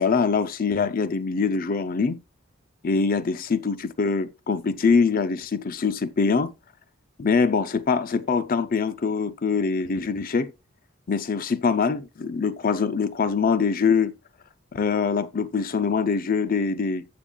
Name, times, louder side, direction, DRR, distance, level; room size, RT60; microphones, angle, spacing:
voice 1, 0.0-2.2 2.8-6.5 7.2-10.5 11.1-14.1 14.7-17.1, left 5 dB, 45° left, 0.5 m, -23 dB
14.5 x 6.9 x 2.3 m
head